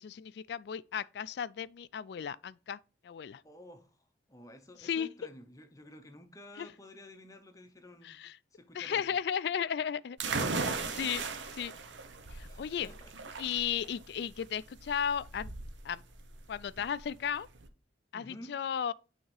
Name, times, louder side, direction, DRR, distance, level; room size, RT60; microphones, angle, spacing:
voice 1, 0.0-2.8 3.0-3.4 4.8-5.1 6.6-6.7 8.0-8.4 8.7-10.2 10.5-10.7 11.0-11.2 11.6-11.7 12.3-12.9 13.4-15.5 15.8-16.0 16.5-17.5 18.1-18.9, left 8 dB, 65° left, 0.3 m, -35 dB
voice 2, 3.4-4.0 4.3-8.2 8.5-9.1 10.5-11.3 12.4-13.1 18.1-18.5, left 1 dB, 20° left, 0.7 m, -52 dB
sound 1, 10.2-17.7, right 4 dB, 80° right, 0.8 m, -38 dB
8.7 x 3.6 x 3.3 m
head